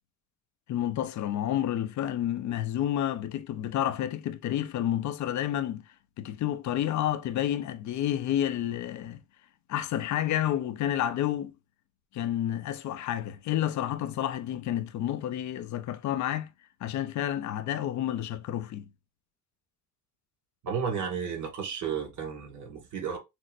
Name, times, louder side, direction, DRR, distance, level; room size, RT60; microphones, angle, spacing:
voice 1, 0.7-5.8 6.2-9.2 9.7-11.5 12.1-16.5 16.8-18.9, left 11 dB, 70° left, 0.5 m, -30 dB
voice 2, 20.6-23.2, right 6 dB, 75° right, 1.8 m, -33 dB
6.0 x 2.0 x 2.4 m
cardioid pair, 90°, 30 cm